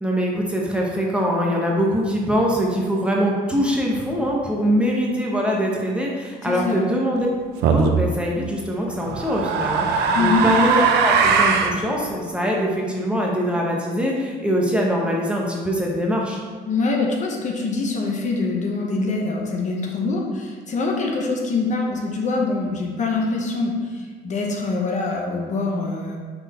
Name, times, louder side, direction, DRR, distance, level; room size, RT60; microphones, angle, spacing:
voice 1, 0.0-7.3 7.7-16.4, equal, 5° right, -2 dB, 0.9 m, -23 dB
voice 2, 6.4-6.8 10.1-10.5 16.7-26.2, left 3 dB, 45° left, 0 dB, 0.9 m, -24 dB
sound 1, 7.6-8.0 9.0-11.8, right 5 dB, 80° right, 0.6 m, -19 dB
5.6 x 4.1 x 4.3 m, 1.5 s
cardioid pair, 110°, 17 cm